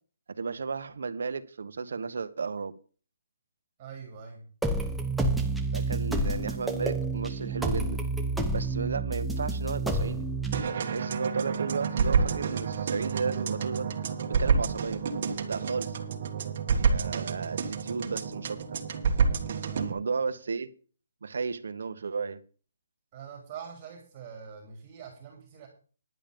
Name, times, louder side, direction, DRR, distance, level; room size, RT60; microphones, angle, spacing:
voice 1, 0.3-2.7 5.7-8.0 8.5-10.2 10.6-13.9 14.4-15.0 15.5-16.0 16.7-18.6 19.7-20.7 21.2-22.4, right 5 dB, 70° right, 10 dB, 1.2 m, -34 dB
voice 2, 3.8-4.5 19.7-19.9 23.1-25.7, right 7 dB, 25° right, 2 dB, 3.2 m, -44 dB
sound 1, 4.6-10.6, right 2 dB, ahead, 0.8 m, -29 dB
sound 2, 10.5-19.9, right 5 dB, 40° right, 1.8 m, -29 dB
11.0 x 9.1 x 5.3 m, 0.38 s
hypercardioid pair, 165°, 0 cm